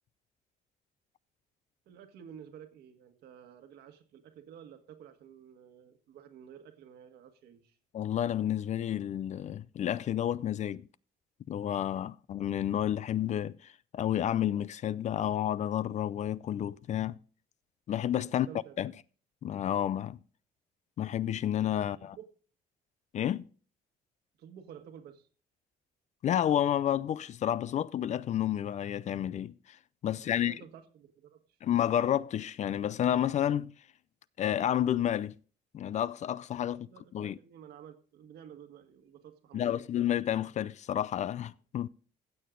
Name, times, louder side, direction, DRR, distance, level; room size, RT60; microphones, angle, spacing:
voice 1, 1.8-7.8 18.2-18.7 22.0-22.2 24.4-25.3 30.1-31.4 36.6-39.9, right 8 dB, 70° right, 1.6 m, -52 dB
voice 2, 7.9-10.9 11.5-17.2 17.9-18.5 18.8-18.9 19.4-20.2 21.0-22.2 23.1-23.5 26.2-29.8 30.0-30.5 31.6-33.7 34.4-35.4 35.7-36.9 37.1-37.4 39.5-41.9, left 10 dB, 45° left, 0.4 m, -30 dB
15.5 x 6.7 x 3.8 m
cardioid pair, 110°, 17 cm